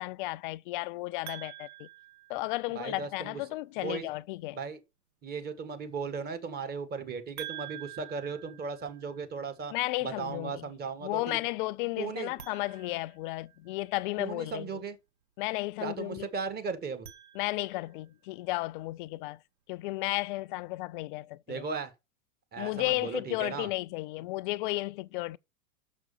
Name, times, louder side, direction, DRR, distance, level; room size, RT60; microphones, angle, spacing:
voice 1, 0.0-1.9 2.3-4.6 9.7-10.7 11.0-14.8 15.4-16.3 17.3-19.4 19.7-21.6 22.6-25.4, left 20 dB, 35° left, 0.5 m, -33 dB
sound 1, 1.3-3.0 7.4-9.4 12.3-13.9 16.8-18.0, right 13 dB, 75° right, 1.6 m, -47 dB
voice 2, 2.7-3.4 3.8-4.0 4.5-4.8 5.2-9.7 10.0-11.4 12.0-12.3 14.2-15.0 15.8-17.1 21.5-21.9 22.5-23.7, right 5 dB, 20° right, 1.5 m, -36 dB
6.5 x 6.0 x 6.8 m
hypercardioid pair, 120°, 44 cm